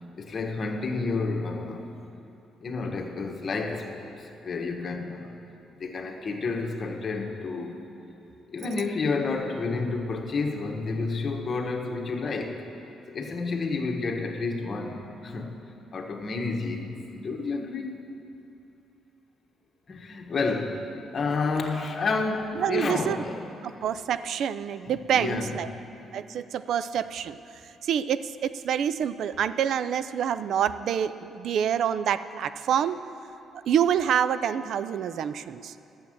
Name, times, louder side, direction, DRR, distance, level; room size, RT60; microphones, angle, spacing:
voice 1, 0.2-1.8 2.6-5.3 5.8-7.8 8.5-12.6 13.1-15.6 15.9-18.0 19.9-20.9 21.1-23.4 25.1-25.8, left 3 dB, 45° left, 2 dB, 1.3 m, -30 dB
voice 2, 22.6-23.2 23.6-25.7 26.1-27.4 27.8-33.0 33.7-35.7, right 9 dB, 70° right, 14 dB, 0.4 m, -27 dB
11.5 x 7.3 x 7.6 m, 2.9 s
cardioid pair, 90°, 0 cm